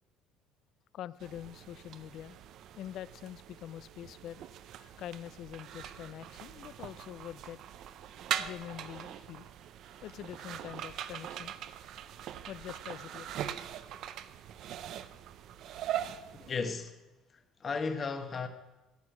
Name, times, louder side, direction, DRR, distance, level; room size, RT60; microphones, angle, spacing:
voice 1, 0.9-2.4 2.8-7.6 8.4-9.5 10.0-11.6 12.5-13.3, left 11 dB, 55° left, 0.4 m, -45 dB
sound 1, 1.2-16.6, right 10 dB, 55° right, 0.6 m, -42 dB
voice 2, 16.3-17.0 17.3-18.5, left 4 dB, 30° left, 1.0 m, -35 dB
13.0 x 8.6 x 6.1 m
cardioid pair, 140°, 0 cm